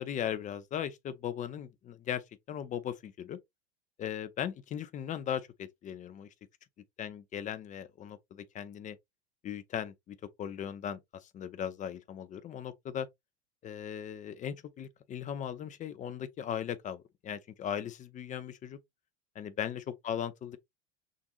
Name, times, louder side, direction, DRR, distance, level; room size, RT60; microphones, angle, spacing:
voice 1, 0.0-3.4 4.0-6.3 7.0-9.0 9.4-13.1 13.6-18.8 19.4-20.6, left 9 dB, 25° left, 0.6 m, -38 dB
6.4 x 2.6 x 2.5 m
figure-of-eight pair, 80°, 33 cm